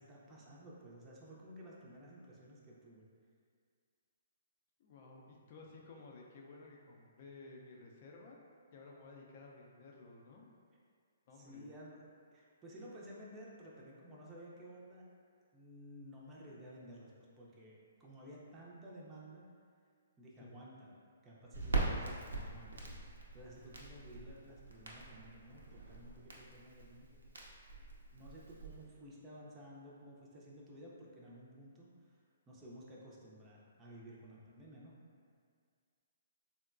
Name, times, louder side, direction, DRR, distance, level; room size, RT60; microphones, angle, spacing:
voice 1, 0.0-3.1 11.3-15.0 15.5-17.1 17.4-19.4 20.2-20.9 21.2-27.2 28.1-32.2 32.5-34.9, equal, 20° right, -5 dB, 0.5 m, -54 dB
voice 2, 4.8-8.4 8.7-10.5 11.3-11.7 20.4-20.6, left 3 dB, 45° left, -1 dB, 0.5 m, -55 dB
Crackle, 21.5-28.8, right 3 dB, 80° right, 0.5 m, -42 dB
3.7 x 2.1 x 2.4 m, 2.1 s
hypercardioid pair, 135°, 0 cm